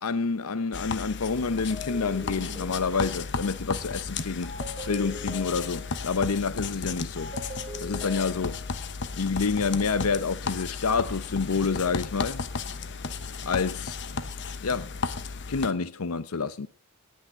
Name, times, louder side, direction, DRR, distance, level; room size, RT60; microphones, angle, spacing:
voice 1, 0.0-4.6 4.9-7.3 7.8-8.6 9.2-12.4 13.4-14.0 14.6-14.9 15.5-16.7, left 4 dB, 80° left, 0.7 m, -28 dB
sound 1, 0.7-15.7, left 4 dB, 55° left, 1.0 m, -34 dB
sound 2, 1.7-3.4 4.4-6.1 7.2-8.9, left 3 dB, 20° right, 6.8 m, -41 dB
18.0 x 6.5 x 7.6 m
head